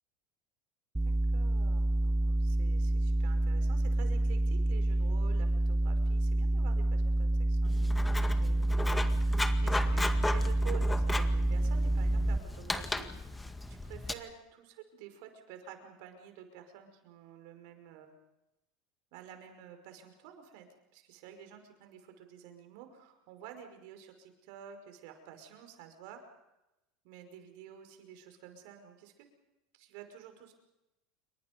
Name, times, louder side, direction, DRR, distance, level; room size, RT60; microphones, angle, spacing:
sound 1, 1.0-12.4, right 1 dB, 10° right, 0.8 m, -28 dB
voice 1, 1.0-13.1 13.7-18.1 19.1-20.7 20.9-26.2 27.0-29.3 29.7-30.5, right 9 dB, 70° right, 6 dB, 5.5 m, -50 dB
Writing, 7.6-14.1, left 2 dB, 10° left, 1.9 m, -36 dB
28.5 x 24.0 x 5.4 m, 0.93 s
hypercardioid pair, 100°, 0 cm